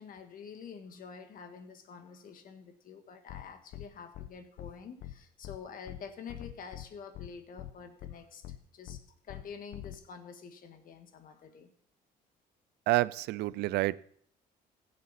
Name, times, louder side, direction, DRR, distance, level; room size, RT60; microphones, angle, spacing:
voice 1, 0.0-11.7, left 6 dB, 55° left, 1.6 m, -48 dB
sound 1, 3.3-3.4 3.7-3.9 4.1-4.3 4.6-4.7 5.0-5.1 5.4-5.6 5.9-6.0 6.3-6.9 7.1-7.3 7.6-7.7 8.0-8.1 8.4-8.6 8.9-9.0 9.3-9.4 9.7-10.0, left 13 dB, 75° left, 0.9 m, -43 dB
voice 2, 12.9-14.0, right 18 dB, 80° right, 0.4 m, -28 dB
16.0 x 7.6 x 4.2 m
cardioid pair, 110°, 17 cm